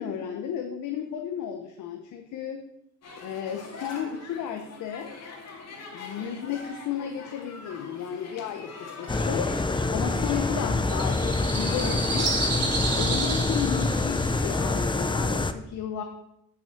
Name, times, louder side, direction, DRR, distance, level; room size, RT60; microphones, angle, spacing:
voice 1, 0.0-2.6 3.2-5.1 5.9-9.5 9.9-12.3 13.0-16.0, left 8 dB, 80° left, 4 dB, 1.1 m, -33 dB
sound 1, 3.0-12.8, left 3 dB, 60° left, 2.3 m, -43 dB
sound 2, 9.1-15.5, left 3 dB, 15° left, 0.7 m, -26 dB
sound 3, 10.0-15.1, right 3 dB, 55° right, 3.3 m, -32 dB
8.5 x 6.3 x 6.7 m, 0.79 s
cardioid pair, 90°, 30 cm